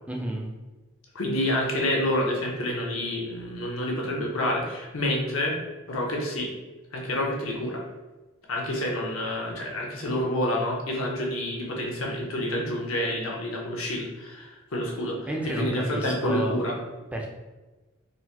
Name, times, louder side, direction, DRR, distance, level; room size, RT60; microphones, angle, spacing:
voice 1, 0.1-0.5 15.3-16.6 17.1-17.3, right 1 dB, 5° right, -1 dB, 0.3 m, -31 dB
voice 2, 1.1-5.6 5.9-6.5 6.9-7.8 8.5-16.7, left 1 dB, 85° left, -2 dB, 0.8 m, -28 dB
3.7 x 2.1 x 2.8 m, 1.2 s
head